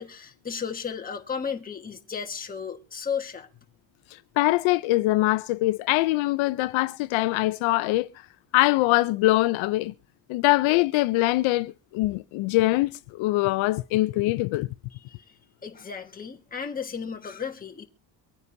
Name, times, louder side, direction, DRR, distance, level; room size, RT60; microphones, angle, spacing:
voice 1, 0.0-3.5 15.0-15.2 15.6-17.9, left 6 dB, 20° left, 1.5 m, -34 dB
voice 2, 4.4-8.1 8.5-9.9 10.3-14.7, left 18 dB, 80° left, 0.7 m, -23 dB
24.5 x 9.7 x 2.7 m
cardioid pair, 150°, 46 cm